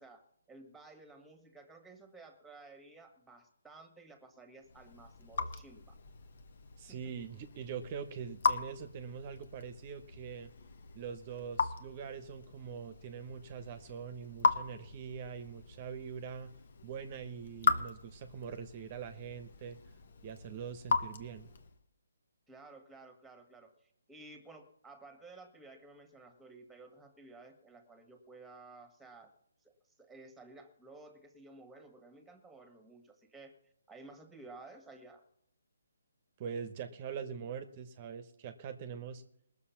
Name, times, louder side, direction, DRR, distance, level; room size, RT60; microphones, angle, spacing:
voice 1, 0.0-6.0 6.9-7.2 22.5-29.3 29.6-33.5 33.9-35.2, right 3 dB, 5° right, 6 dB, 1.8 m, -54 dB
Raindrop / Drip, 4.6-21.8, left 4 dB, 55° left, 1.2 m, -38 dB
voice 2, 6.8-10.5 10.9-16.5 16.8-19.8 20.2-21.5 36.4-39.2, right 7 dB, 35° right, 10 dB, 1.0 m, -43 dB
20.0 x 6.8 x 5.8 m, 0.70 s
figure-of-eight pair, 145°, 0 cm